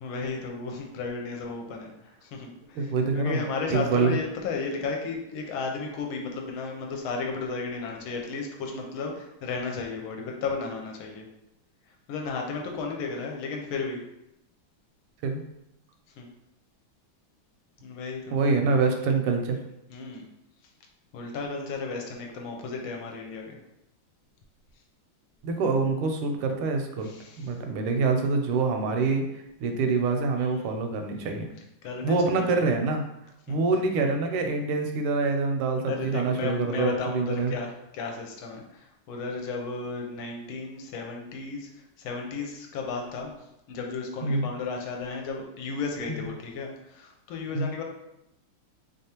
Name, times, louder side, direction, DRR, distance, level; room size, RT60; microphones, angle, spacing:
voice 1, 0.0-1.9 2.4-2.5 3.1-9.1 9.4-11.2 12.1-14.0 16.2-16.3 17.8-18.4 19.9-20.2 21.1-23.6 30.4-30.5 31.8-32.5 33.5-33.6 35.9-37.7 37.9-38.6 39.1-41.6 42.0-43.3 43.7-46.7 47.3-47.8, left 4 dB, 80° left, 1 dB, 1.4 m, -33 dB
voice 2, 2.7-4.2 15.2-15.4 18.3-19.6 25.4-27.1 27.4-29.2 29.6-31.5 32.0-33.0 33.5-37.6 44.2-44.5 46.1-46.2 47.5-47.7, right 4 dB, 90° right, 4 dB, 1.5 m, -25 dB
3.6 x 3.5 x 2.8 m, 0.85 s
omnidirectional pair, 2.3 m